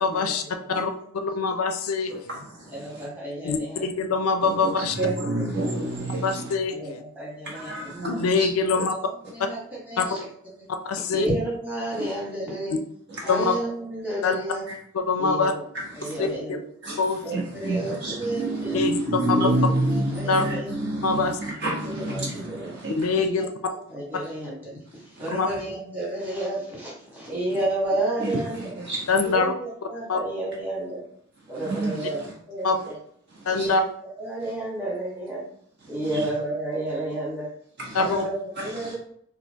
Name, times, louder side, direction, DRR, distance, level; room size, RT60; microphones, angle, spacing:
voice 1, 0.0-0.4 0.7-2.1 3.4-4.9 6.2-7.0 8.0-8.9 10.0-10.1 10.8-11.3 13.3-13.5 14.2-14.3 15.1-15.5 16.2-16.3 17.0-17.2 18.7-19.0 19.3-19.5 20.3-20.4 21.0-21.4 23.0-23.4 25.4-25.5 29.1-29.5 30.1-30.2 32.6-32.8 33.5-33.8 37.9-38.3, left 4 dB, 80° left, 7 dB, 0.4 m, -23 dB
voice 2, 2.1-3.0 4.4-6.5 7.4-8.5 8.7-8.8 11.9-12.1 13.1-13.3 14.7-14.8 15.7-16.3 16.8-23.2 25.2-25.3 28.2-29.2 31.5-32.3 33.4-33.7 36.1-36.2 37.8-38.1 38.6-38.9, right 2 dB, 50° right, -4 dB, 1.4 m, -29 dB
voice 3, 2.7-3.8 5.3-5.4 6.7-7.9 8.5-10.3 10.5-10.7 11.1-12.8 13.2-14.6 15.2-15.6 15.9-16.6 17.2-18.8 19.3-20.7 21.8-22.7 23.1-28.7 29.2-31.0 31.5-33.0 33.5-33.8 34.2-35.4 35.9-37.5 38.0-38.9, right 1 dB, 10° right, -7 dB, 1.4 m, -31 dB
4.2 x 2.6 x 2.8 m, 0.65 s
head